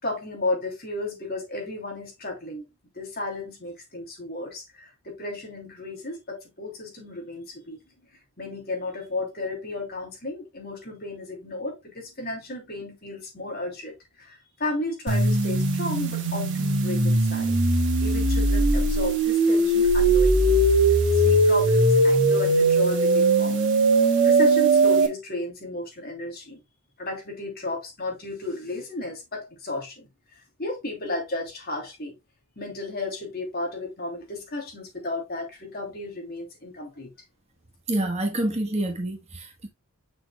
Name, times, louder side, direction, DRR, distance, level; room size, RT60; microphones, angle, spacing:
voice 1, 0.0-2.6 2.9-7.8 8.4-17.5 18.0-20.6 21.1-23.7 24.2-26.6 27.0-32.2 32.6-37.1, left 2 dB, 45° left, 3.1 m, -33 dB
sound 1, 15.1-25.1, right 2 dB, 55° right, 2.2 m, -20 dB
voice 2, 37.9-39.7, right 1 dB, 30° right, 1.3 m, -27 dB
7.5 x 6.4 x 2.3 m
head